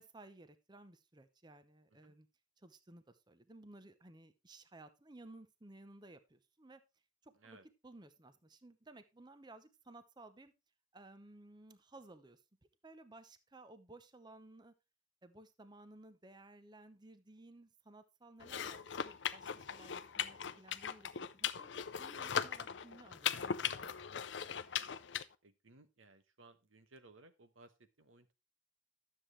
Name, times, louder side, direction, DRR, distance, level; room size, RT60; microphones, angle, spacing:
voice 1, 0.0-2.3 2.6-6.8 7.2-7.6 7.8-10.5 10.9-12.4 12.8-14.7 15.2-21.7 22.0-24.2, right 2 dB, 20° right, 11 dB, 0.7 m, -57 dB
voice 2, 7.3-7.7 25.4-28.3, right 2 dB, 90° right, 10 dB, 1.2 m, -61 dB
sound 1, 18.4-25.2, left 8 dB, 65° left, 0.5 m, -39 dB
12.0 x 7.4 x 3.2 m, 0.26 s
head